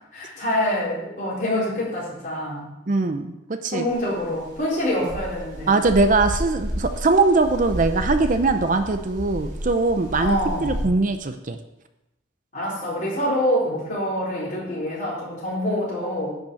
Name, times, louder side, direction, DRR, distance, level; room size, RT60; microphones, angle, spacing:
voice 1, 0.0-2.7 3.7-5.7 10.2-10.8 12.5-16.4, left 1 dB, 40° left, -6 dB, 4.2 m, -26 dB
voice 2, 2.9-3.9 5.0-5.1 5.7-11.6, right 3 dB, 40° right, 8 dB, 0.6 m, -21 dB
sound 1, 3.9-10.8, equal, 70° right, 2.8 m, -31 dB
10.5 x 5.5 x 6.9 m, 0.93 s
head